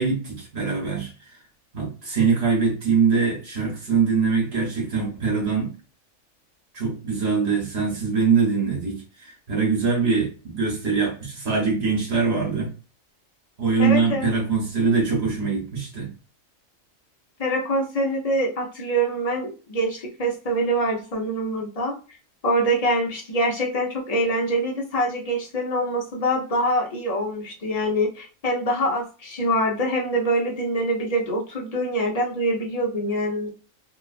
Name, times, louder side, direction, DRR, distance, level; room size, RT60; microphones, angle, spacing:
voice 1, 0.0-1.3 1.7-5.7 6.7-12.7 13.6-16.1, right 5 dB, 50° right, -2 dB, 1.4 m, -23 dB
voice 2, 13.8-14.3 17.4-21.9 22.4-33.5, right 1 dB, 40° left, -1 dB, 0.6 m, -24 dB
2.9 x 2.3 x 2.4 m, 0.35 s
omnidirectional pair, 1.4 m